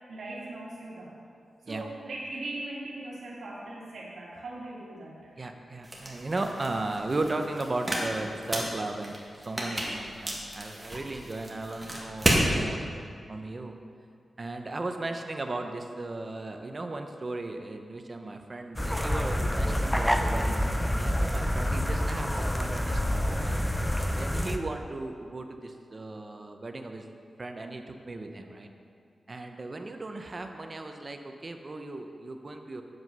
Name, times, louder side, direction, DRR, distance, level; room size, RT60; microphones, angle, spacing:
voice 1, 0.1-1.1 1.6-5.3 28.4-28.6, right 2 dB, 85° right, -5 dB, 1.7 m, -40 dB
voice 2, 5.4-12.9 13.3-13.7 14.4-23.7 24.2-27.1 27.4-28.7 29.3-32.8, right 2 dB, 35° right, 5 dB, 0.7 m, -36 dB
sound 1, 5.8-12.5, right 1 dB, 10° right, 1.7 m, -32 dB
sound 2, 18.8-24.6, equal, 10° left, 0.6 m, -27 dB
7.8 x 7.8 x 5.5 m, 2.3 s
wide cardioid pair, 100°, 0 cm